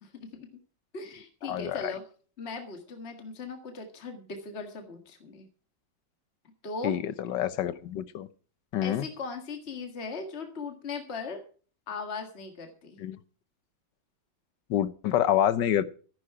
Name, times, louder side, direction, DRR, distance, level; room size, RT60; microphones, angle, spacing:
voice 1, 0.0-0.5 0.9-2.0 2.4-5.5 6.6-7.0 8.8-11.4 11.9-13.0, left 4 dB, 35° left, 5 dB, 2.0 m, -38 dB
voice 2, 1.5-1.9 6.8-8.3 8.7-9.1 13.0-13.2 14.7-15.8, left 11 dB, 65° left, 14 dB, 1.5 m, -27 dB
14.0 x 11.5 x 4.8 m, 0.41 s
omnidirectional pair, 2.1 m